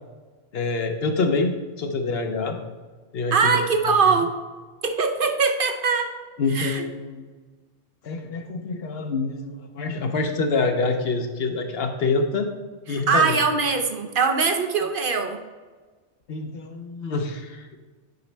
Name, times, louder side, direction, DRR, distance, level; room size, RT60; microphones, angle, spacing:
voice 1, 0.5-2.6 3.1-3.6 6.4-7.3 8.0-12.5 12.9-13.4 16.3-17.7, left 3 dB, 60° left, 5 dB, 1.0 m, -26 dB
voice 2, 3.3-4.3 4.8-6.1 6.5-6.9 12.9-15.4, right 5 dB, 50° right, 5 dB, 0.9 m, -22 dB
9.3 x 5.5 x 3.3 m, 1.4 s
omnidirectional pair, 1.2 m